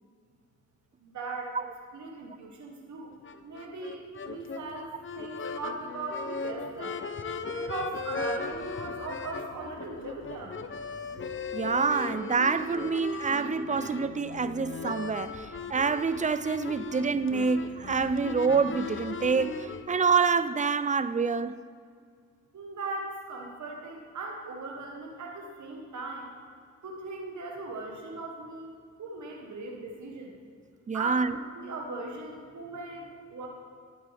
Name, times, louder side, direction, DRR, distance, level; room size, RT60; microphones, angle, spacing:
voice 1, 1.0-1.5 1.9-3.1 3.4-4.9 5.1-7.0 7.5-10.6 22.5-26.3 26.8-28.7 29.0-30.3 30.9-33.5, right 3 dB, 70° right, 1.3 m, -39 dB
sound 1, 3.2-19.9, left 4 dB, 40° left, 0.7 m, -37 dB
voice 2, 11.5-21.6 30.9-31.4, right 5 dB, 25° right, 0.4 m, -27 dB
11.5 x 9.4 x 3.4 m
cardioid pair, 60°, 30 cm